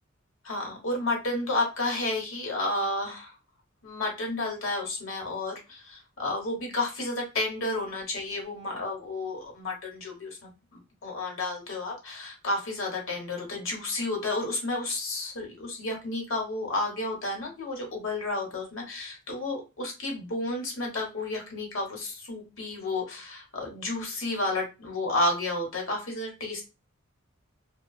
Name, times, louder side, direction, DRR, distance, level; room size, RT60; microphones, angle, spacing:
voice 1, 0.4-3.3 3.8-10.5 11.0-26.6, left 2 dB, 65° left, 0 dB, 1.2 m, -31 dB
3.0 x 2.3 x 2.3 m, 0.28 s
head